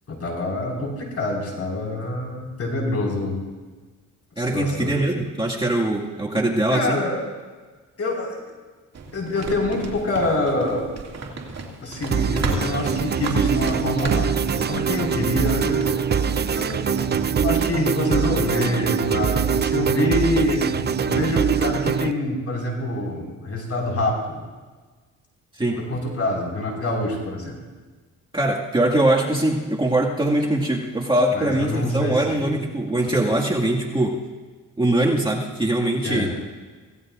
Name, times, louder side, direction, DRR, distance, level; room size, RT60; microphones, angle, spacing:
voice 1, 0.1-3.4 4.4-4.9 6.7-7.2 8.0-8.4 9.1-10.9 11.8-24.4 25.7-27.6 31.3-32.7 33.1-33.2 36.0-36.3, left 2 dB, 50° left, -1 dB, 5.2 m, -26 dB
voice 2, 4.4-7.0 25.6-25.8 28.3-34.2 34.8-36.3, right 1 dB, 15° right, -2 dB, 2.0 m, -22 dB
sound 1, 8.9-17.7, right 3 dB, 55° right, 2.4 m, -34 dB
sound 2, 12.1-22.1, right 7 dB, 30° right, 0.6 m, -23 dB
26.0 x 17.0 x 2.6 m, 1.4 s
cardioid pair, 80°, 32 cm